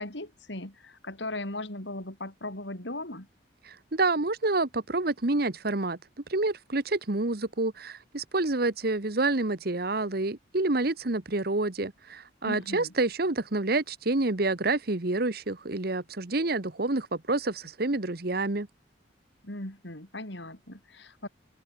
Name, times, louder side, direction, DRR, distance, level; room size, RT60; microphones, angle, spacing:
voice 1, 0.0-3.3 12.4-12.9 19.4-21.3, left 2 dB, 70° left, 5.3 m, -38 dB
voice 2, 3.6-6.0 6.3-18.7, right 2 dB, 55° right, 1.3 m, -28 dB
open air
head